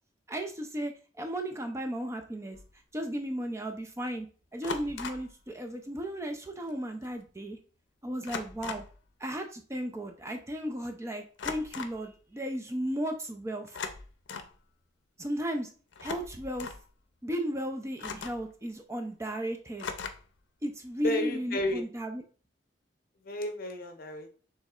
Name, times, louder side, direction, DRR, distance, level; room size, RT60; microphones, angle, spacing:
voice 1, 0.3-0.9 1.2-2.6 2.9-4.3 4.5-7.6 8.0-8.8 9.2-13.8 15.2-15.7 16.0-16.7 17.2-19.9 20.6-22.2, equal, 15° right, 4 dB, 0.4 m, -35 dB
sound 1, 2.5-2.7 4.6-5.3 6.7-6.8 7.0-7.3 8.2-9.0 11.4-12.0 13.6-14.6 15.9-16.8 18.0-18.5 19.8-20.4, left 5 dB, 85° left, 0.5 m, -39 dB
voice 2, 21.0-21.8 23.2-24.3, left 1 dB, 50° left, 6 dB, 0.7 m, -32 dB
6.4 x 3.1 x 2.4 m, 0.39 s
head